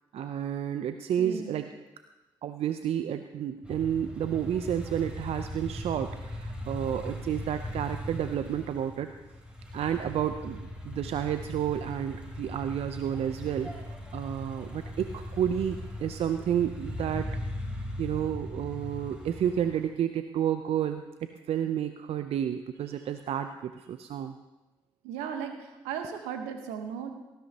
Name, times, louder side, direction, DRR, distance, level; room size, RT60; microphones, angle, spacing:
voice 1, 0.1-1.7 2.4-9.1 9.7-10.6 10.8-17.3 18.0-21.0 21.5-24.4, right 9 dB, 65° right, 9 dB, 0.6 m, -31 dB
voice 2, 1.2-1.6 25.0-27.1, right 7 dB, 80° right, 6 dB, 1.2 m, -36 dB
sound 1, 3.6-19.9, equal, 10° right, 3.9 m, -39 dB
18.0 x 14.0 x 2.9 m, 1.1 s
hypercardioid pair, 40°, 11 cm